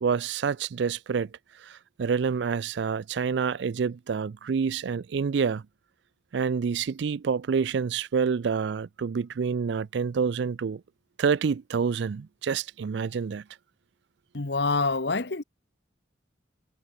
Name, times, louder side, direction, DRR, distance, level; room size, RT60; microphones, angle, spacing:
voice 1, 0.0-1.3 1.6-5.6 6.3-10.8 11.2-13.4, right 6 dB, 65° right, 0.4 m, -27 dB
voice 2, 14.3-15.4, left 3 dB, 60° left, 1.2 m, -26 dB
head